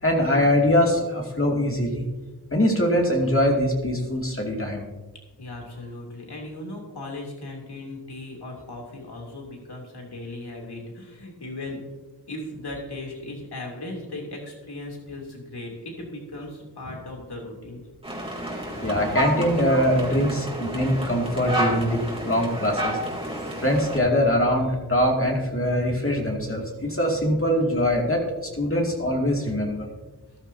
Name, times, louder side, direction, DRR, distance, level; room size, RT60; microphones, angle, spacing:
voice 1, 0.0-2.1 2.5-4.8 16.9-17.0 18.5-23.0 23.6-28.2 28.6-29.9, equal, 35° left, -1 dB, 2.5 m, -23 dB
voice 2, 5.4-11.8 12.2-17.8, left 2 dB, 75° left, -1 dB, 3.1 m, -37 dB
sound 1, 18.0-24.0, right 1 dB, 15° right, 3.3 m, -30 dB
14.0 x 12.0 x 2.8 m, 1.2 s
cardioid pair, 45°, 40 cm